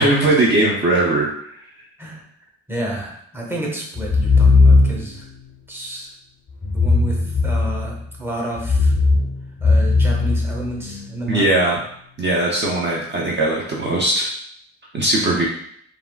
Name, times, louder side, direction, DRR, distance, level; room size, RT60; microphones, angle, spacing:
voice 1, 0.0-1.6 11.3-11.8 12.2-14.3 14.9-15.5, right 2 dB, 35° right, -3 dB, 0.5 m, -19 dB
voice 2, 2.7-5.3 5.7-6.1 6.7-9.0 9.6-11.5, right 1 dB, 10° right, -2 dB, 0.8 m, -30 dB
sound 1, 4.0-5.3 6.6-8.0 8.6-11.1, left 3 dB, 30° left, 0.4 m, -17 dB
3.4 x 2.4 x 2.2 m, 0.67 s
cardioid pair, 90°, 30 cm